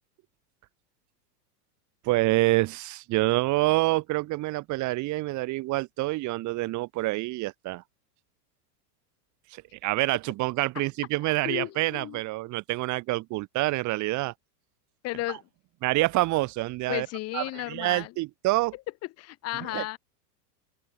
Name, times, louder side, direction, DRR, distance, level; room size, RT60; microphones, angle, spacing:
voice 1, 2.0-7.8 9.5-14.3 15.8-17.1 17.3-18.7 19.7-19.8, right 19 dB, 35° right, 2.3 m, -27 dB
voice 2, 11.4-12.2 15.0-15.5 16.9-18.1 18.7-18.8 19.2-20.0, left 19 dB, 30° left, 1.0 m, -34 dB
open air
supercardioid pair, 145°, 49 cm